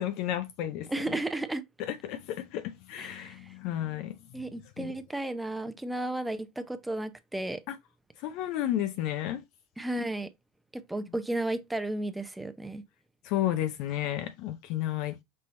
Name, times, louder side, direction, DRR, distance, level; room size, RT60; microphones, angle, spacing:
voice 1, 0.0-0.9 1.8-4.1 4.8-4.9 7.7-7.8 8.2-9.4 13.2-15.2, left 12 dB, 60° left, 0.5 m, -32 dB
voice 2, 0.9-1.6 3.0-3.3 4.3-7.6 9.8-10.3 10.7-12.8, right 1 dB, 10° right, 0.6 m, -33 dB
5.4 x 2.7 x 3.2 m
hypercardioid pair, 90°, 0 cm